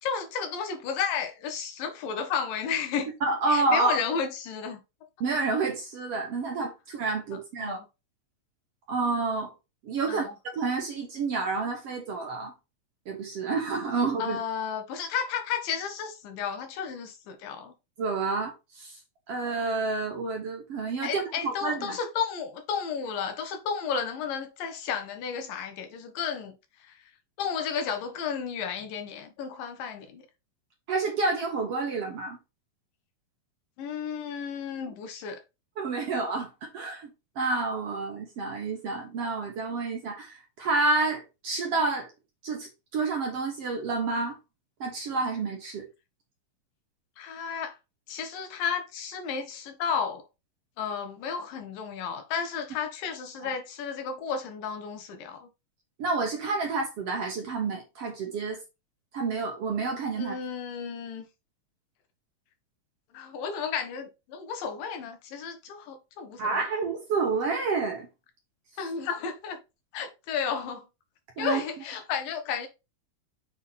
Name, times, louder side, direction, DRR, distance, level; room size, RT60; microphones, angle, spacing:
voice 1, 0.0-3.1 3.5-4.8 7.6-7.9 10.1-10.3 14.2-17.7 21.0-26.6 26.8-27.0 27.4-30.2 33.8-35.4 47.2-47.8 48.1-50.2 50.8-55.5 60.2-61.3 63.1-66.6 68.8-69.6 69.9-70.9 71.4-72.7, left 6 dB, 80° left, 2.8 m, -32 dB
voice 2, 3.2-4.0 5.2-7.8 8.9-9.5 9.8-12.5 13.1-14.4 18.0-19.0 19.3-22.0 30.9-32.4 35.8-37.1 37.4-42.1 42.4-44.4 44.8-45.9 53.4-53.5 56.0-58.6 59.1-60.3 66.4-68.1 71.4-71.6, right 3 dB, 55° right, 1.8 m, -29 dB
7.0 x 3.7 x 4.1 m
omnidirectional pair, 4.0 m